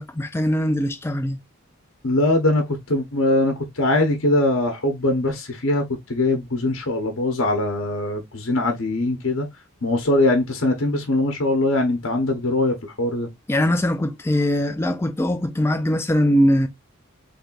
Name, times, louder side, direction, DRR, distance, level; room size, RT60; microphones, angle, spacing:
voice 1, 0.0-1.4 13.5-16.7, equal, 10° left, 0.3 m, -21 dB
voice 2, 2.0-5.8 6.1-9.5 9.8-13.3, left 2 dB, 60° left, 1.0 m, -21 dB
4.2 x 3.3 x 2.4 m
head